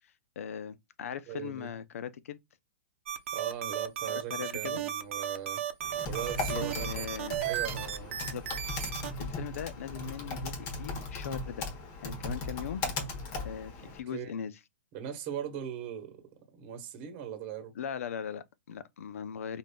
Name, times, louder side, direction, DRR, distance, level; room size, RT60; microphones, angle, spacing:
voice 1, 0.4-2.4 4.1-4.8 6.5-7.4 8.2-8.4 9.2-11.7 12.0-12.8 13.4-14.5 17.8-19.6, left 8 dB, 70° left, 0.5 m, -39 dB
voice 2, 1.3-1.7 3.3-5.6 6.0-7.0 7.4-8.2 14.1-14.3 14.9-16.3 16.6-17.7, right 9 dB, 35° right, 1.0 m, -39 dB
sound 1, 3.1-9.1, right 10 dB, 60° right, 0.7 m, -34 dB
Typing, 5.8-14.0, left 3 dB, 30° left, 1.1 m, -37 dB
5.0 x 2.4 x 2.2 m
hypercardioid pair, 145°, 8 cm